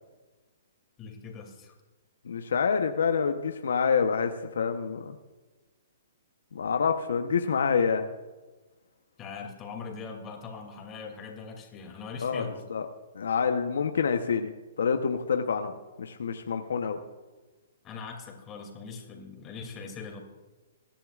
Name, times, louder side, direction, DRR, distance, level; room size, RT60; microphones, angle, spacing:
voice 1, 1.0-1.7 9.2-12.6 17.8-20.2, left 5 dB, 25° left, 2 dB, 2.7 m, -41 dB
voice 2, 2.2-5.2 6.5-8.1 12.2-12.9 13.1-14.5 14.8-15.7 16.0-17.0, left 6 dB, 80° left, 6 dB, 0.9 m, -27 dB
23.5 x 10.5 x 2.5 m, 1.2 s
hypercardioid pair, 135°, 0 cm